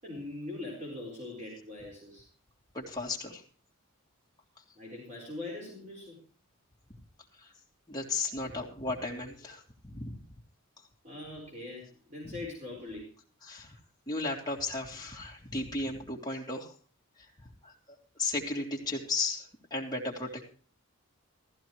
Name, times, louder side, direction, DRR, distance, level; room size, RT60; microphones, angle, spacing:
voice 1, 0.0-2.2 4.8-6.2 8.3-8.5 11.0-13.1, left 2 dB, 35° right, -3 dB, 5.5 m, -42 dB
voice 2, 2.7-3.4 7.4-7.5 7.9-10.2 12.2-12.3 13.5-13.7 14.1-16.7 17.6-17.7 18.2-20.4, left 3 dB, 20° left, -1 dB, 3.0 m, -35 dB
15.0 x 15.0 x 3.2 m, 0.41 s
head